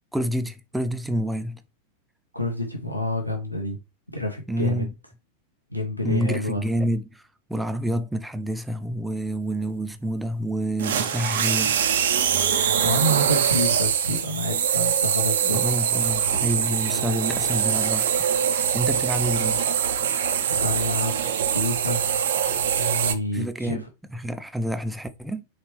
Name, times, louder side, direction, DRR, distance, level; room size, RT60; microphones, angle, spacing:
voice 1, 0.1-1.6 4.5-4.9 6.0-7.2 7.5-11.8 15.4-18.2 18.5-19.7 23.3-23.8 24.1-25.4, equal, 5° right, 0.5 m, -28 dB
voice 2, 2.3-3.8 4.1-4.9 5.7-6.6 12.8-15.6 20.5-21.1 21.5-22.1 22.8-23.9, left 1 dB, 90° left, 0.7 m, -28 dB
sound 1, 10.8-23.1, right 8 dB, 60° right, 0.5 m, -23 dB
4.1 x 3.2 x 3.0 m
figure-of-eight pair, 90°, 0 cm